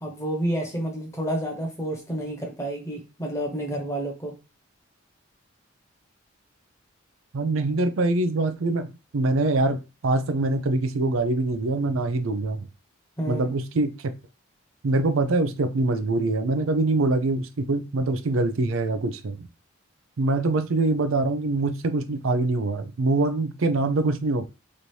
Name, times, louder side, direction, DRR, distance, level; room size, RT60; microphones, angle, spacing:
voice 1, 0.0-4.3 13.2-13.5, right 1 dB, 15° left, 1.1 m, -30 dB
voice 2, 7.3-12.7 13.3-14.1 14.8-19.5 20.2-24.5, right 2 dB, 80° right, 0.5 m, -24 dB
3.3 x 2.7 x 4.5 m
head